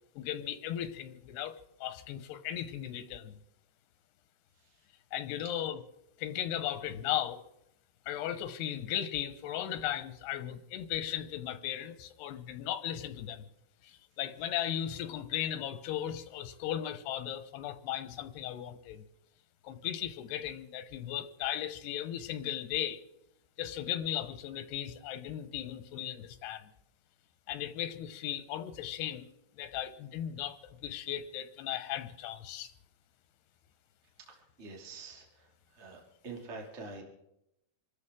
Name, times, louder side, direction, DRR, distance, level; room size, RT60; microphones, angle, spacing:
voice 1, 0.2-3.4 5.1-5.8 6.2-7.4 8.1-13.4 13.8-19.0 19.6-23.0 23.6-26.7 27.5-29.3 29.6-32.7, left 11 dB, 90° left, 11 dB, 3.1 m, -36 dB
voice 2, 34.3-35.5 35.7-37.0, right 3 dB, 20° right, 0 dB, 2.5 m, -46 dB
27.0 x 13.0 x 3.7 m, 0.83 s
omnidirectional pair, 4.6 m